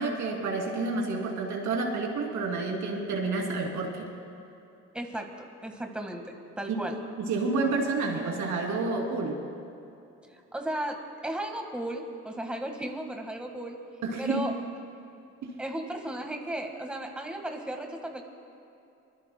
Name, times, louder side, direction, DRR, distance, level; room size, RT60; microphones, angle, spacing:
voice 1, 0.0-4.1 7.2-9.4 14.0-14.4 15.4-15.5, right 3 dB, 75° right, 0 dB, 2.9 m, -29 dB
voice 2, 4.9-7.0 10.3-13.8 14.2-14.6 15.6-18.2, right 1 dB, 5° right, 3 dB, 1.5 m, -35 dB
24.0 x 20.5 x 2.2 m, 2.7 s
cardioid pair, 90°, 30 cm